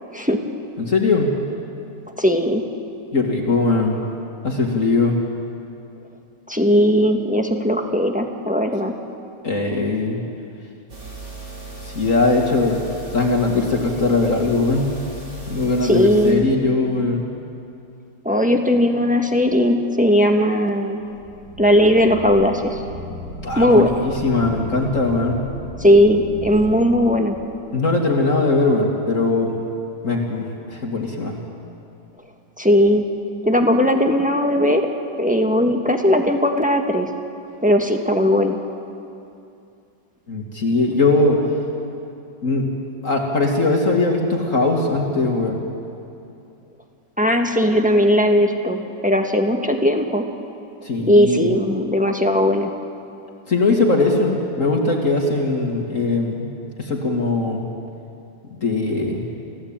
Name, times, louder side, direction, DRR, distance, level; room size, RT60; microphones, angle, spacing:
voice 1, 0.8-1.3 3.1-4.0 4.4-5.2 9.4-10.2 11.8-12.8 13.1-15.0 15.5-17.2 23.4-25.4 27.7-29.5 30.0-31.3 40.3-41.4 42.4-42.7 43.0-45.6 50.8-51.5 53.5-56.5 56.8-57.7 58.5-59.3, left 3 dB, 45° left, 0 dB, 2.3 m, -20 dB
voice 2, 2.2-2.6 6.5-8.9 15.8-16.5 18.2-21.0 21.6-22.8 23.6-23.9 25.8-27.4 32.6-33.0 33.4-34.8 35.2-37.1 37.6-38.6 47.2-50.3 51.1-52.7, equal, 5° right, 3 dB, 1.3 m, -17 dB
sound 1, 10.9-16.3, right 3 dB, 70° right, 5.5 m, -36 dB
sound 2, 21.0-28.0, left 1 dB, 40° right, 4.3 m, -36 dB
29.5 x 15.0 x 8.8 m, 2.6 s
omnidirectional pair, 1.9 m